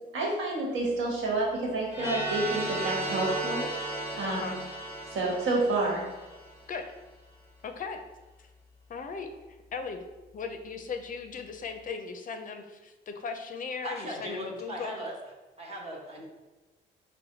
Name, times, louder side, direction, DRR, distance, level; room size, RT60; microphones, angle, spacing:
voice 1, 0.1-3.7 4.2-4.6 5.1-6.0, right 2 dB, 75° right, -2 dB, 1.3 m, -29 dB
sound 1, 1.9-6.8, right 2 dB, 10° right, 1.3 m, -35 dB
voice 2, 4.2-4.6 6.7-6.8 7.6-8.0 8.4-8.5 8.9-10.0 10.3-15.0, left 5 dB, 45° left, 6 dB, 0.4 m, -38 dB
voice 3, 13.8-15.1 15.6-16.3, equal, 30° right, -2 dB, 0.9 m, -38 dB
4.1 x 2.1 x 3.9 m, 1.2 s
cardioid pair, 90°, 20 cm